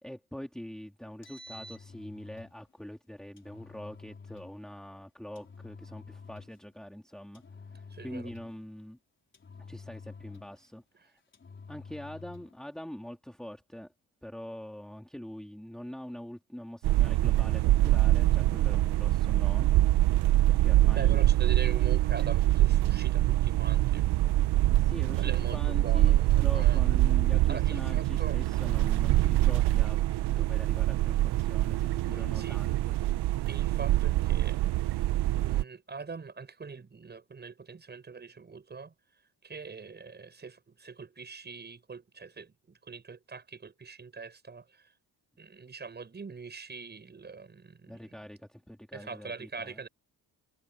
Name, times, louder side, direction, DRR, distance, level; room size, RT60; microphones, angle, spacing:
voice 1, 0.0-7.4 7.7-9.0 9.6-11.1 11.7-13.9 14.2-19.7 20.5-21.2 24.7-30.0 30.3-33.0 47.9-49.9, equal, ahead, 2.1 m, -44 dB
Engine, 1.1-2.6 3.4-4.6 5.4-6.6 7.4-8.6 9.3-10.7 11.3-12.6, left 4 dB, 30° left, 4.3 m, -48 dB
voice 2, 7.9-8.3 20.9-24.1 25.2-26.8 27.5-28.4 32.1-32.6 33.5-34.6 35.3-38.9 39.4-44.8 45.4-48.2 48.9-49.9, right 4 dB, 25° right, 6.8 m, -43 dB
sound 1, 16.8-35.6, right 15 dB, 80° right, 0.6 m, -25 dB
wide cardioid pair, 175°, 39 cm